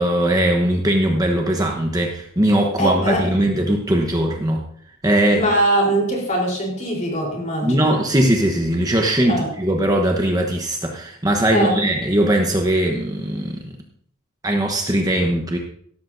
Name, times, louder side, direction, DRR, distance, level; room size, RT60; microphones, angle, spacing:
voice 1, 0.0-4.6 5.0-5.4 7.6-13.7 14.4-15.6, right 1 dB, 15° right, 1 dB, 1.0 m, -20 dB
voice 2, 2.8-3.2 5.3-8.0 9.3-9.5 11.5-11.7, right 1 dB, 35° left, 0 dB, 3.8 m, -21 dB
17.0 x 13.0 x 2.7 m, 0.66 s
head